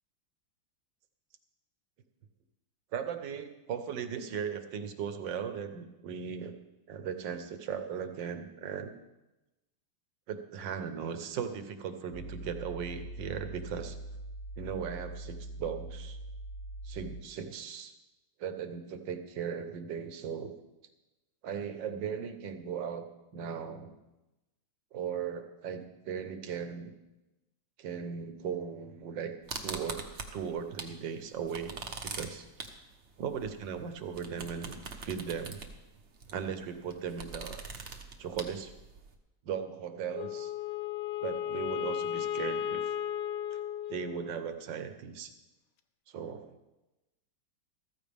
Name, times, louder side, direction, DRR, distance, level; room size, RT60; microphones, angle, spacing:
voice 1, 2.9-6.5 6.9-8.9 10.3-14.0 14.6-16.2 16.8-17.9 18.4-20.5 21.4-23.1 23.3-23.9 24.9-26.9 27.8-29.3 29.6-31.8 32.1-32.5 33.2-35.6 36.3-37.6 38.2-38.7 39.4-40.5 41.2-42.8 43.5-43.6 43.9-45.3 46.1-46.6, right 7 dB, 70° right, 8 dB, 1.6 m, -37 dB
sound 1, 12.1-17.2, right 1 dB, 20° left, 2.4 m, -43 dB
sound 2, 29.5-31.0 31.3-39.1, right 4 dB, 45° right, 1.1 m, -42 dB
Wind instrument woodwind instrument, 40.1-44.6, left 10 dB, 70° left, 1.1 m, -35 dB
14.0 x 14.0 x 3.5 m, 1.0 s
omnidirectional pair, 2.1 m